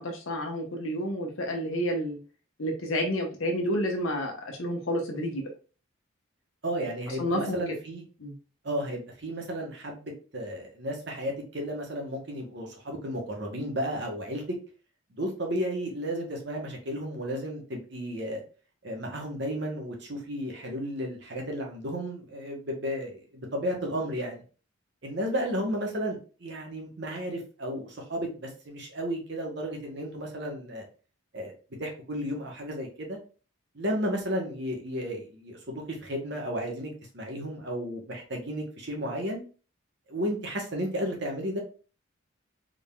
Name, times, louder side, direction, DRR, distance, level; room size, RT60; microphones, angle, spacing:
voice 1, 0.0-2.2 2.6-5.5 7.1-7.8 8.2-8.3, equal, 80° left, 2 dB, 0.9 m, -30 dB
voice 2, 6.6-8.0 8.6-14.4 15.2-18.4 18.8-24.4 25.0-30.8 31.3-31.5 31.8-33.2 33.7-39.4 40.1-41.6, equal, 55° right, 1 dB, 1.1 m, -33 dB
3.8 x 3.6 x 2.3 m, 0.36 s
head